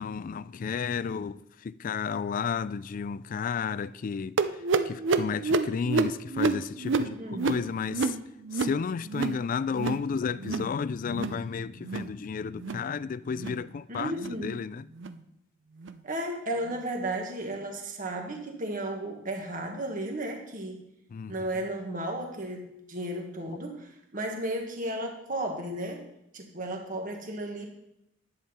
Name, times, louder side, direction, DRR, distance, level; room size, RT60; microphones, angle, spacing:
voice 1, 0.0-1.4 1.6-4.3 4.9-7.2 7.4-8.2 8.5-14.1 14.4-14.8 21.1-21.3, left 6 dB, 45° left, 0.3 m, -32 dB
sound 1, 4.4-9.4 9.7-10.1 10.3-10.7 11.0-11.4 11.8-12.1 12.5-12.9 13.3-13.6 14.1-14.4 15.0-15.2 15.8-16.0 16.7-16.8 17.5-17.6, right 4 dB, 65° right, 0.5 m, -29 dB
voice 2, 6.9-7.6 13.9-14.6 16.0-20.8 21.3-26.0 26.3-27.7, right 1 dB, 45° right, 1.6 m, -34 dB
10.5 x 8.7 x 4.3 m
head